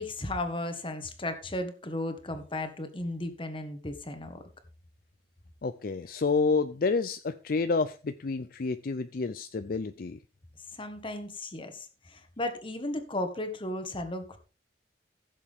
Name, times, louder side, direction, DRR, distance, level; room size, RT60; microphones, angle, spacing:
voice 1, 0.0-4.4 10.7-14.4, left 1 dB, 30° left, 7 dB, 1.5 m, -35 dB
voice 2, 5.6-10.2, left 4 dB, 55° left, 11 dB, 0.5 m, -29 dB
15.5 x 7.3 x 3.6 m, 0.34 s
head